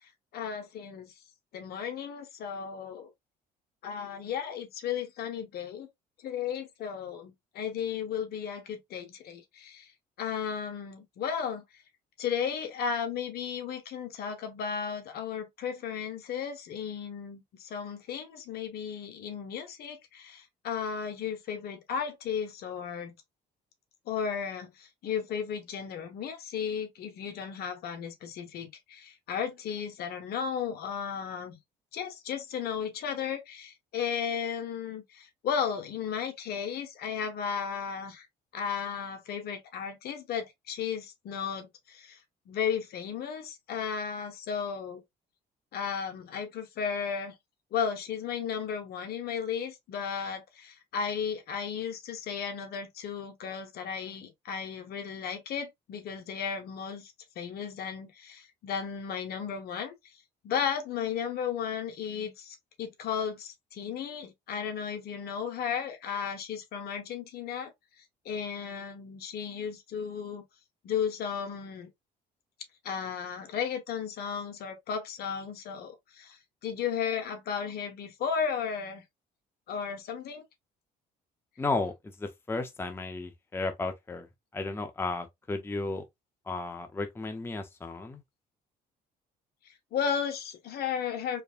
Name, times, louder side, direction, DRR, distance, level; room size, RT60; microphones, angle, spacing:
voice 1, 0.3-1.1 1.5-3.1 3.8-5.9 6.2-9.9 10.2-11.6 12.2-23.2 24.1-31.6 31.9-38.3 38.5-42.2 42.5-45.0 45.7-47.3 47.7-59.9 60.4-67.7 68.2-70.4 70.8-71.9 72.8-79.0 79.7-80.4 89.9-91.4, left 7 dB, 65° left, 1.4 m, -34 dB
voice 2, 81.6-84.3 84.5-86.0 86.5-88.2, left 3 dB, 15° left, 0.8 m, -34 dB
4.6 x 3.2 x 2.5 m
cardioid pair, 110°, 17 cm